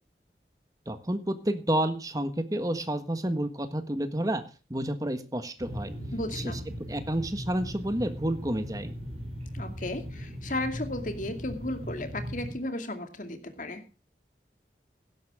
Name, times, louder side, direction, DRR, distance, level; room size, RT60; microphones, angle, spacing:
voice 1, 0.9-4.4 4.7-5.9 6.3-6.6 6.9-8.9, right 1 dB, 20° right, 9 dB, 1.4 m, -30 dB
sound 1, 5.6-12.5, equal, 35° right, 6.5 m, -38 dB
voice 2, 6.1-6.6 9.5-13.8, left 1 dB, 45° left, 7 dB, 2.4 m, -34 dB
16.5 x 11.5 x 3.6 m, 0.33 s
head